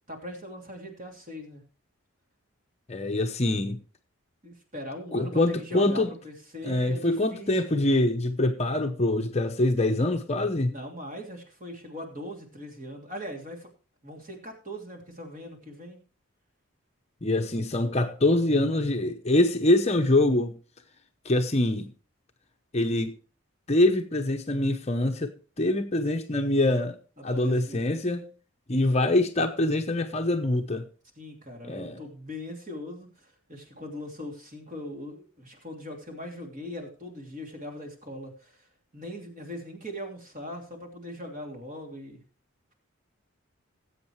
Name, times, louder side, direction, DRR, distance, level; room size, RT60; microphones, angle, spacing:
voice 1, 0.1-1.6 4.4-7.7 10.6-13.7 14.0-16.0 27.2-27.9 31.2-38.7 38.9-42.2, left 1 dB, 35° right, 2.8 m, -40 dB
voice 2, 2.9-3.8 5.1-6.1 6.6-10.7 17.2-20.5 21.2-21.9 22.7-23.1 23.7-27.0 27.2-28.2 28.7-30.8 31.6-32.0, left 1 dB, 30° left, 0.8 m, -24 dB
19.0 x 8.0 x 3.2 m
head